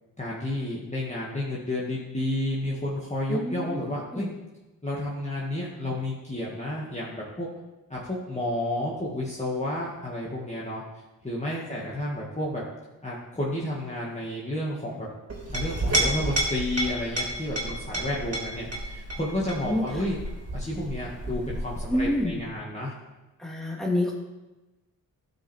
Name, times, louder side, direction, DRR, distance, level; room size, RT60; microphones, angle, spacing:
voice 1, 0.2-4.3 4.8-7.5 7.9-10.8 11.2-12.6 13.0-15.1 15.5-22.9, left 1 dB, 15° left, -6 dB, 2.1 m, -31 dB
voice 2, 3.3-3.8 4.1-4.3 11.5-11.9 19.6-19.9 21.9-22.4 23.4-24.1, left 1 dB, ahead, -2 dB, 2.9 m, -28 dB
Chink clink, 15.3-22.4, right 1 dB, 35° right, 3.2 m, -31 dB
12.5 x 5.2 x 4.5 m, 1.1 s
cardioid pair, 50°, 40 cm